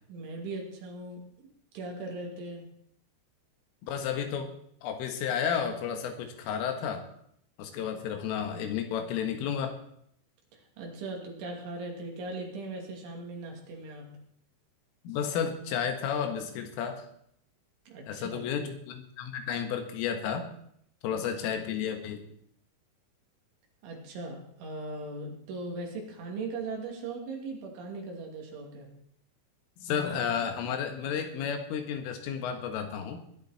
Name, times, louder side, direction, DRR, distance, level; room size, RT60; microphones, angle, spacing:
voice 1, 0.1-1.5 1.7-2.7 10.5-14.1 17.9-18.4 23.8-28.9, right 3 dB, 70° right, 0 dB, 5.0 m, -39 dB
voice 2, 3.8-4.5 4.8-7.1 7.6-9.7 15.1-17.1 18.1-20.5 21.0-22.2 29.8-33.2, left 7 dB, 80° left, 5 dB, 4.1 m, -32 dB
20.5 x 11.5 x 4.3 m, 0.69 s
omnidirectional pair, 5.8 m